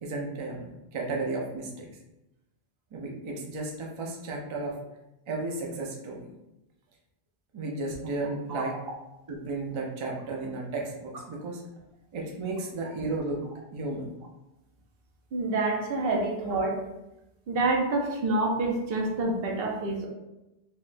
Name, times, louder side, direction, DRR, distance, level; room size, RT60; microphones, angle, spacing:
voice 1, 0.0-1.9 2.9-4.8 5.3-6.3 7.5-8.9 9.3-11.6 12.1-13.4 13.7-14.1 16.1-16.2, right 2 dB, 50° right, -1 dB, 0.3 m, -34 dB
voice 2, 15.3-16.8 17.5-20.1, right 2 dB, 65° right, 0 dB, 0.8 m, -27 dB
3.6 x 2.2 x 2.5 m, 0.93 s
omnidirectional pair, 1.1 m